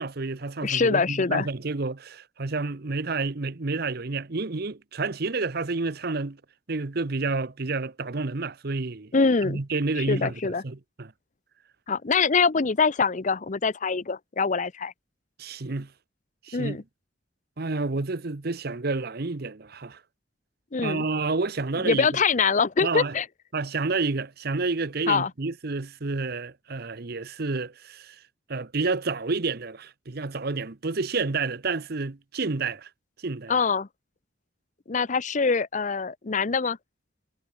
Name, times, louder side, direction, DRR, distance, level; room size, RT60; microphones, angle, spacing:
voice 1, 0.0-6.4 6.7-9.1 9.4-11.1 15.4-15.9 16.5-16.8 17.6-20.0 20.8-22.1 22.8-23.1 23.5-28.2 28.5-32.9 33.2-33.5, right 3 dB, 55° right, 0.9 m, -29 dB
voice 2, 0.6-1.5 9.1-9.6 10.0-10.6 11.9-14.9 16.5-16.8 20.7-21.0 21.8-23.3 25.1-25.3 33.5-33.9 34.9-36.8, left 5 dB, 40° left, 0.7 m, -24 dB
head